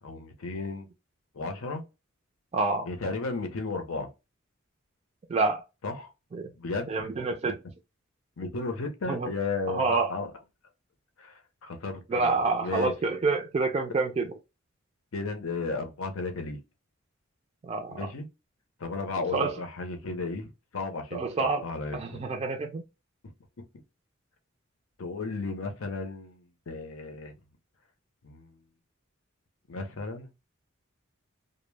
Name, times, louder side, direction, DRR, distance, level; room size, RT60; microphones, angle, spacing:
voice 1, 0.0-0.9 1.3-1.8 2.8-4.1 5.8-6.1 6.6-6.9 8.4-10.3 11.2-12.9 15.1-16.6 17.9-18.3 18.8-20.5 20.7-22.3 23.6-23.7 25.0-27.3 28.2-28.5 29.7-30.3, left 3 dB, 90° left, 0.6 m, -34 dB
voice 2, 2.5-2.9 5.3-5.6 6.3-6.5 6.9-7.5 9.1-9.3 9.7-10.1 12.1-14.3 17.6-18.0 19.3-19.5 21.1-21.6 21.9-22.8, right 3 dB, 30° right, 0.3 m, -27 dB
2.0 x 2.0 x 3.1 m
head